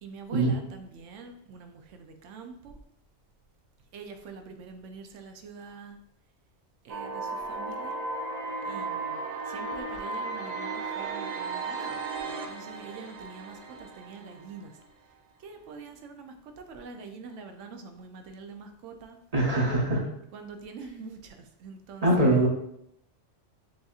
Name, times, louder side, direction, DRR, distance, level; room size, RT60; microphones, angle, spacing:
voice 1, 0.0-2.8 3.9-6.0 6.8-8.0 8.7-9.2 9.5-14.7 15.4-19.2 20.3-22.4, right 5 dB, 80° right, 6 dB, 0.9 m, -45 dB
sound 1, 6.9-14.9, right 3 dB, 50° right, 0.5 m, -35 dB
voice 2, 19.3-20.1 22.0-22.5, right 1 dB, 35° right, -2 dB, 0.8 m, -22 dB
6.1 x 2.7 x 2.4 m, 0.75 s
omnidirectional pair, 1.2 m